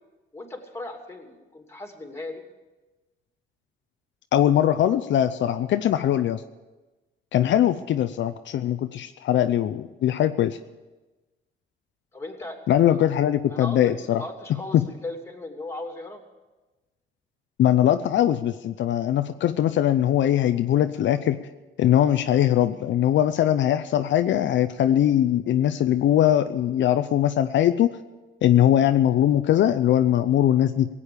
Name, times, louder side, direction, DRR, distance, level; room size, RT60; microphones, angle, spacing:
voice 1, 0.3-2.4 12.1-13.0 13.5-16.2, left 2 dB, 15° left, 3 dB, 2.8 m, -37 dB
voice 2, 4.3-6.4 7.3-10.6 12.7-14.2 14.7-14.8 17.6-21.4 21.8-28.0 28.4-30.9, left 11 dB, 70° left, 9 dB, 0.6 m, -21 dB
17.0 x 8.5 x 8.6 m, 1.2 s
cardioid pair, 90°, 20 cm